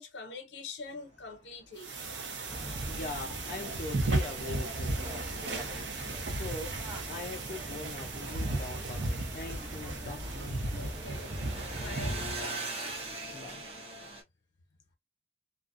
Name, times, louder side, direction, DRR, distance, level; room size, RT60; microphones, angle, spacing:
voice 1, 0.0-2.0 10.7-11.4 11.7-13.1, left 4 dB, 90° left, 0.7 m, -45 dB
sound 1, 1.3-1.4 1.6-6.0 6.3-14.2, right 2 dB, 30° right, 0.8 m, -44 dB
sound 2, 1.8-12.5, right 2 dB, 85° right, 0.6 m, -35 dB
sound 3, 2.5-12.4, equal, 15° right, 0.4 m, -44 dB
voice 2, 2.9-6.7 7.1-10.6 13.3-13.6, left 3 dB, 50° left, 0.4 m, -42 dB
2.4 x 2.1 x 2.4 m
head